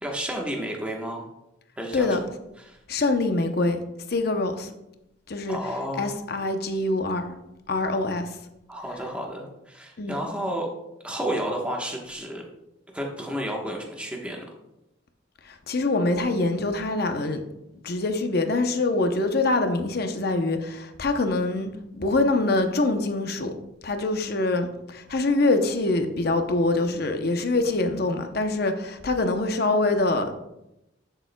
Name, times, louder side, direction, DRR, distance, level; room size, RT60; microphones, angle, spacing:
voice 1, 0.0-1.2 1.8-2.2 2.6-2.8 5.5-6.2 8.7-10.7 11.0-12.4 12.9-14.6, equal, 5° right, 0 dB, 1.1 m, -31 dB
voice 2, 2.9-3.8 4.1-4.7 5.3-5.6 6.0-7.4 7.7-8.4 10.0-10.2 15.4-17.4 17.8-23.5 23.8-30.3, left 2 dB, 50° left, 6 dB, 0.7 m, -24 dB
11.5 x 6.8 x 2.2 m, 0.89 s
head